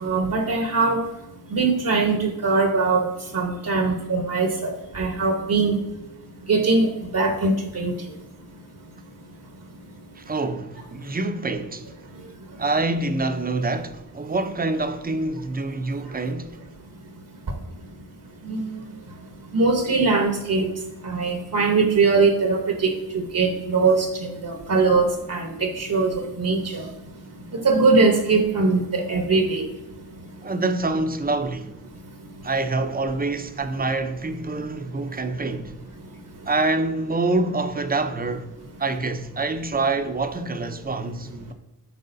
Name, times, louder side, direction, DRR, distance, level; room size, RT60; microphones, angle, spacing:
voice 1, 0.0-1.0 1.5-3.1 3.3-5.8 6.5-6.9 7.1-7.9 18.5-18.7 19.5-20.7 21.0-22.9 23.3-24.1 24.4-26.8 27.6-29.6, right 4 dB, 65° right, 1.0 m, -21 dB
voice 2, 10.2-12.0 12.6-16.6 30.4-31.8 32.4-35.8 36.4-41.5, right 2 dB, 25° right, 0.6 m, -26 dB
12.5 x 4.7 x 2.7 m
wide cardioid pair, 100°, 36 cm